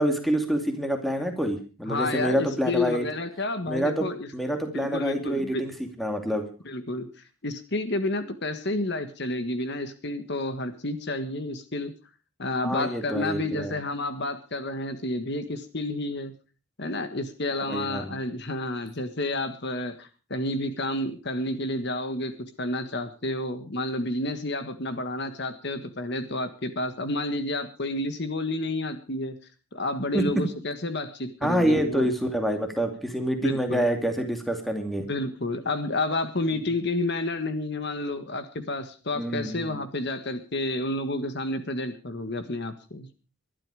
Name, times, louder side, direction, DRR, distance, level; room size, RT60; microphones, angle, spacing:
voice 1, 0.0-3.1 3.7-4.1 4.3-5.7 6.0-6.5 12.6-13.7 17.7-18.1 30.1-30.2 31.4-35.0 39.2-39.8, equal, ahead, 5 dB, 2.5 m, -27 dB
voice 2, 1.9-4.3 4.7-5.6 6.6-7.1 7.4-11.9 12.4-16.3 16.8-22.3 22.6-29.3 29.7-32.1 33.4-33.9 35.1-43.1, left 2 dB, 50° left, 10 dB, 1.6 m, -30 dB
22.0 x 12.0 x 4.9 m, 0.36 s
head